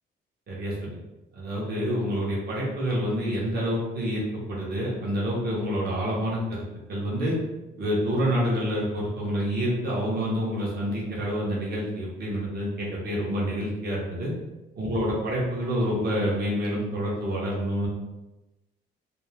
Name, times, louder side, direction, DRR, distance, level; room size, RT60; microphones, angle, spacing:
voice 1, 0.5-1.0 1.3-6.6 6.9-7.4 7.8-14.3 14.8-17.9, equal, 55° right, -5 dB, 1.0 m, -27 dB
2.6 x 2.1 x 3.2 m, 1.0 s
cardioid pair, 90°, 20 cm